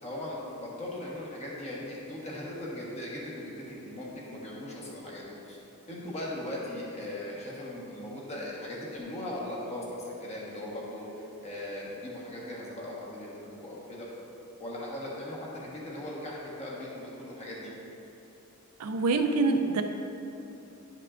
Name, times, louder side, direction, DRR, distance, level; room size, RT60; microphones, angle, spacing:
voice 1, 0.0-5.6 5.9-14.1 14.6-17.7, left 1 dB, 30° left, -5 dB, 1.3 m, -39 dB
voice 2, 18.8-19.8, right 3 dB, 85° right, 6 dB, 0.5 m, -25 dB
11.0 x 5.5 x 2.5 m, 2.9 s
head